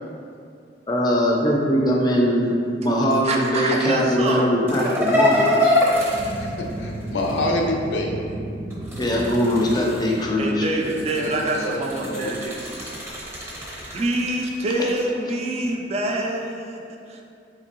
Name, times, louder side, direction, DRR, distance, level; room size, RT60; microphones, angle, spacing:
voice 1, 0.9-5.5 9.0-10.7, equal, 25° left, -2 dB, 0.5 m, -21 dB
voice 2, 3.2-4.5 10.4-12.8 13.9-17.2, right 1 dB, 35° right, 1 dB, 0.4 m, -26 dB
sound 1, 4.7-7.4 8.7-10.2 10.8-15.0, left 1 dB, 15° right, 0.7 m, -25 dB
sound 2, 6.1-11.7, right 1 dB, 85° right, 0.6 m, -34 dB
voice 3, 6.4-8.1 11.1-12.4, left 1 dB, 80° left, 0 dB, 0.5 m, -27 dB
4.5 x 2.9 x 3.0 m, 2.5 s
head